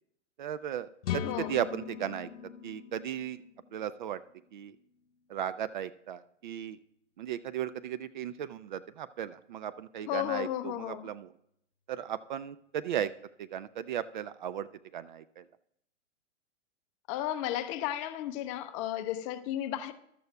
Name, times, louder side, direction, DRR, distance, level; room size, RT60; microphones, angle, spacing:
voice 1, 0.4-2.3 2.6-3.4 3.7-4.2 4.5-4.8 5.3-6.8 7.2-11.3 11.9-13.1 13.4-15.4, right 10 dB, 40° right, 0.4 m, -36 dB
sound 1, 1.0-4.8, left 10 dB, 55° left, 1.0 m, -40 dB
voice 2, 1.2-1.5 10.1-11.1 17.1-19.9, left 12 dB, 25° left, 0.5 m, -34 dB
14.0 x 12.0 x 2.3 m
figure-of-eight pair, 110°, 37 cm